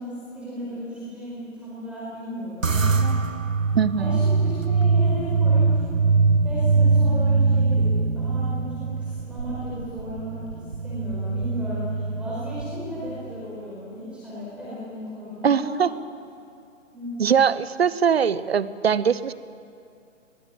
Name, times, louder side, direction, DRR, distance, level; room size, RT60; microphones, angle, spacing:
voice 1, 0.0-3.1 4.0-5.8 6.4-15.7 16.9-17.2, equal, 5° right, -9 dB, 5.0 m, -35 dB
sound 1, 2.6-13.2, right 4 dB, 80° right, 1.0 m, -22 dB
voice 2, 3.7-4.2 15.4-15.9 17.2-19.3, right 7 dB, 50° right, 17 dB, 0.9 m, -21 dB
22.5 x 21.0 x 7.5 m, 2.6 s
figure-of-eight pair, 135°, 38 cm